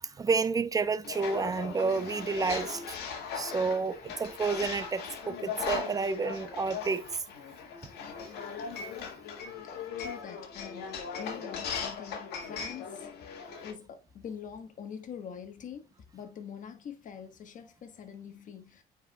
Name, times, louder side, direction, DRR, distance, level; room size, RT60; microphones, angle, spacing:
voice 1, 0.0-3.0 3.3-7.1, right 4 dB, 20° right, 0.6 m, -30 dB
sound 1, 1.0-13.7, left 6 dB, 75° left, 1.7 m, -38 dB
voice 2, 10.0-13.1 13.6-18.8, left 7 dB, 50° left, 1.3 m, -44 dB
9.1 x 4.6 x 2.2 m
cardioid pair, 110°, 17 cm